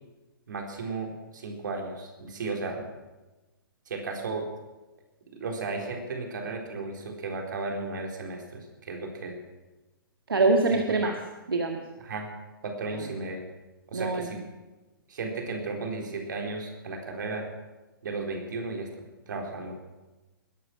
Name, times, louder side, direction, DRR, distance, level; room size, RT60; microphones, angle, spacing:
voice 1, 0.5-2.9 3.9-4.4 5.3-9.4 10.7-11.1 12.0-12.3 12.6-13.4 13.9-14.4 15.1-17.4 18.0-18.9 19.3-19.8, right 3 dB, 60° right, 2 dB, 4.0 m, -34 dB
voice 2, 10.3-11.1 11.5-11.8 12.9-13.1 13.9-14.3, right 3 dB, 75° right, 3 dB, 1.7 m, -24 dB
20.5 x 11.5 x 6.1 m, 1.1 s
figure-of-eight pair, 115°, 12 cm